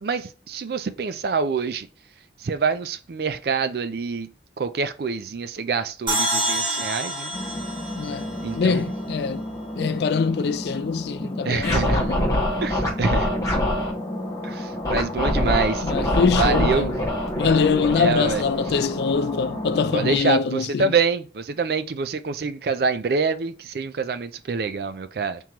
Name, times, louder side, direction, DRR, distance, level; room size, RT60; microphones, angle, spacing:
voice 1, 0.0-1.9 2.4-4.3 4.6-7.3 8.4-8.9 11.4-12.0 12.6-13.3 14.4-15.9 16.4-16.9 17.9-18.4 19.9-25.4, right 5 dB, 60° right, 0.4 m, -26 dB
sound 1, 6.1-9.4, right 1 dB, 25° right, 1.1 m, -28 dB
sound 2, 7.3-20.2, left 1 dB, 40° left, 1.3 m, -32 dB
voice 2, 8.0-8.3 8.5-9.4 9.7-12.2 15.8-16.9 17.4-20.9, left 5 dB, 65° left, 0.3 m, -23 dB
Scratching (performance technique), 11.6-13.9 14.8-19.2, left 1 dB, 20° left, 1.1 m, -24 dB
3.6 x 3.0 x 4.4 m
head